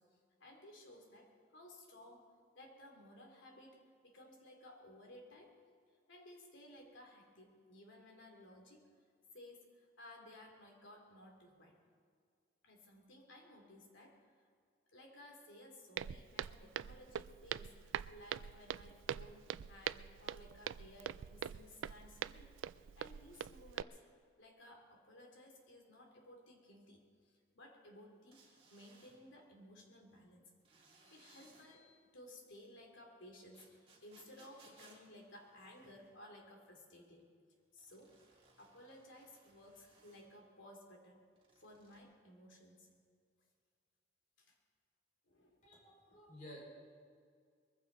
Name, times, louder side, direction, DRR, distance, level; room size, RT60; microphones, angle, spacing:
voice 1, 0.0-2.3 2.5-5.5 6.1-8.8 9.3-11.8 12.6-14.3 14.9-22.5 22.9-24.0 24.4-30.5 30.9-37.2 37.7-38.1 38.6-41.2 41.5-42.9 44.4-44.6 45.3-45.7, left 1 dB, 85° left, 1 dB, 3.0 m, -58 dB
Walk footsteps, 16.0-23.8, right 9 dB, 90° right, 0.3 m, -43 dB
sound 1, 28.3-29.2 30.6-31.7 33.5-36.1 37.8-40.3 41.3-42.0, right 3 dB, 30° right, 2.9 m, -66 dB
voice 2, 45.6-46.6, left 1 dB, 40° left, -4 dB, 5.2 m, -54 dB
22.0 x 15.0 x 4.0 m, 2.1 s
head